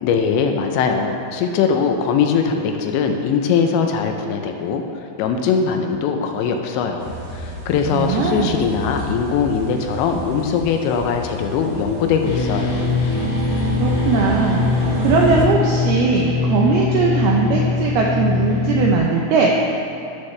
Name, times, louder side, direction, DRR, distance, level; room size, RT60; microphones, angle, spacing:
voice 1, 0.0-4.8 5.2-12.9, left 6 dB, 80° left, 4 dB, 2.9 m, -21 dB
sound 1, 7.0-15.4, right 1 dB, 65° right, 2.1 m, -29 dB
voice 2, 7.9-8.6 13.8-19.7, right 4 dB, 85° right, -1 dB, 2.2 m, -19 dB
sound 2, 12.2-19.0, left 4 dB, 60° left, 3.1 m, -22 dB
13.5 x 11.5 x 3.2 m, 2.7 s
omnidirectional pair, 5.4 m